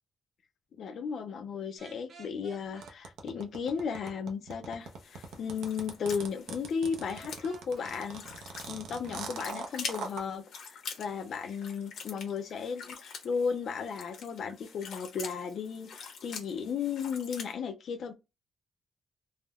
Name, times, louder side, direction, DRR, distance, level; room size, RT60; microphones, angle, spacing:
voice 1, 0.8-18.1, left 6 dB, 50° left, 0.4 m, -35 dB
sound 1, 1.8-2.9 7.1-8.0 9.6-10.0, right 4 dB, 40° right, 0.5 m, -52 dB
sound 2, 2.8-10.2, right 5 dB, 85° right, 0.6 m, -41 dB
sound 3, 4.8-17.5, left 5 dB, 70° left, 0.9 m, -46 dB
3.4 x 2.1 x 2.3 m
cardioid pair, 175°, 0 cm